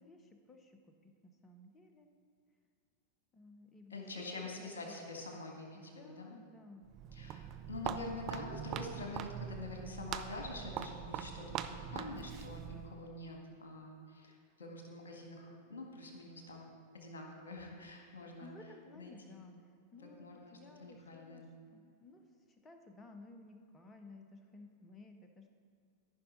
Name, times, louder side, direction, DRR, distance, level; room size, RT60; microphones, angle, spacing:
voice 1, 0.0-2.1 3.3-5.0 5.3-5.4 5.7-6.9 18.1-19.6 19.9-21.5 21.7-25.5, left 2 dB, 20° left, 5 dB, 0.9 m, -56 dB
voice 2, 3.9-6.4 7.1-18.5 18.9-19.4 20.2-21.4, left 2 dB, 65° left, 1 dB, 1.7 m, -46 dB
Walk footsteps, 6.8-13.0, right 9 dB, 35° right, 0.5 m, -43 dB
14.0 x 5.6 x 4.2 m, 2.3 s
figure-of-eight pair, 90°, 0 cm